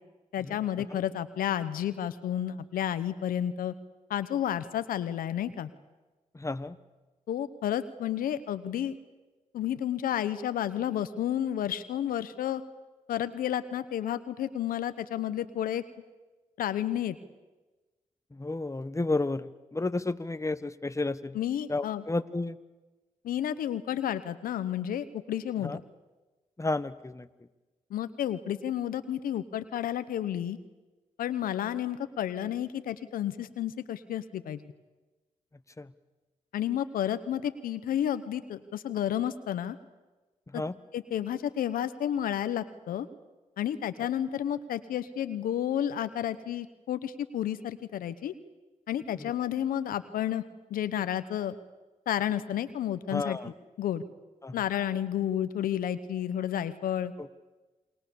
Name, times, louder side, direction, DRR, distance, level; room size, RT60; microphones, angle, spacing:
voice 1, 0.3-3.7 4.1-5.7 7.3-9.0 9.5-12.6 13.1-15.8 16.6-17.2 21.3-22.0 23.2-25.8 27.9-30.6 31.2-34.6 36.5-39.8 40.5-40.6 40.9-43.1 43.6-48.3 48.9-50.4 50.7-51.6 52.1-53.4 53.8-54.0 54.5-57.1, left 10 dB, 85° left, 12 dB, 1.0 m, -31 dB
voice 2, 6.3-6.8 18.3-21.4 21.7-22.6 25.6-25.8 26.6-27.3 35.8-35.9 40.5-40.7 44.0-44.1 49.2-49.3 53.1-53.5 54.4-54.5, left 2 dB, 20° left, 12 dB, 1.2 m, -32 dB
28.5 x 21.0 x 7.1 m, 1.2 s
supercardioid pair, 45°, 14 cm